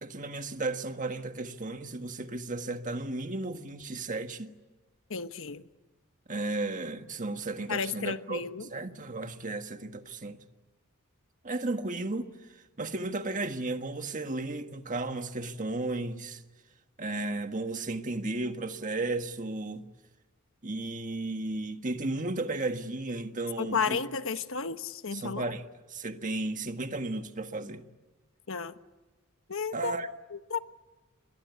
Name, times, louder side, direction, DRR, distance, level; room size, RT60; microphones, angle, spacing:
voice 1, 0.0-4.5 6.3-10.4 11.4-12.3 12.8-16.4 17.0-19.8 20.6-24.0 25.1-27.8 29.7-30.1, right 2 dB, 35° right, 1.6 m, -34 dB
voice 2, 5.1-5.6 7.7-8.7 23.6-25.5 28.5-28.7 29.5-29.9 30.3-30.6, left 5 dB, 65° left, 1.2 m, -32 dB
29.0 x 23.0 x 8.3 m
head